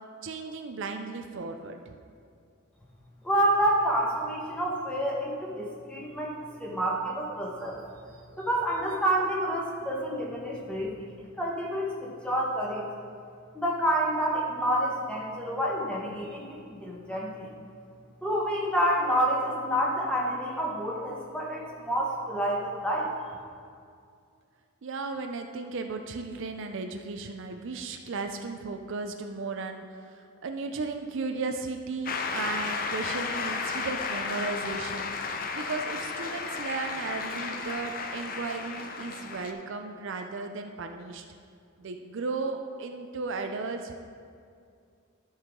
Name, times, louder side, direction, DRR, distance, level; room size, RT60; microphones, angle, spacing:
voice 1, 0.2-2.0 24.8-41.2 41.8-43.9, right 4 dB, 60° right, 5 dB, 0.5 m, -35 dB
voice 2, 3.2-7.8 8.4-11.0 11.4-12.8 13.5-17.5 18.2-23.1, right 1 dB, 5° left, -4 dB, 1.4 m, -28 dB
Shout / Cheering / Applause, 32.1-39.5, left 4 dB, 40° left, 0.6 m, -33 dB
13.0 x 5.6 x 3.7 m, 2.3 s
head